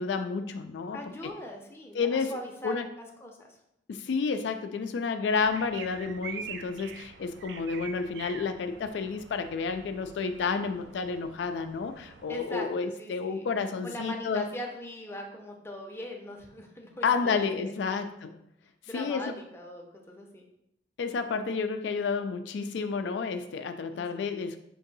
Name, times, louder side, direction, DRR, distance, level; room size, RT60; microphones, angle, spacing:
voice 1, 0.0-1.0 1.9-2.4 2.6-2.9 3.9-14.5 17.0-18.3 18.9-19.3 21.0-24.6, left 5 dB, 90° left, 8 dB, 0.3 m, -30 dB
voice 2, 0.9-3.6 4.1-4.2 12.3-13.5 13.8-18.0 18.9-20.4 23.9-24.3, left 1 dB, 15° left, 1 dB, 0.6 m, -41 dB
sound 1, 5.4-12.4, right 6 dB, 70° right, 0.4 m, -45 dB
4.5 x 2.6 x 4.0 m, 0.79 s
head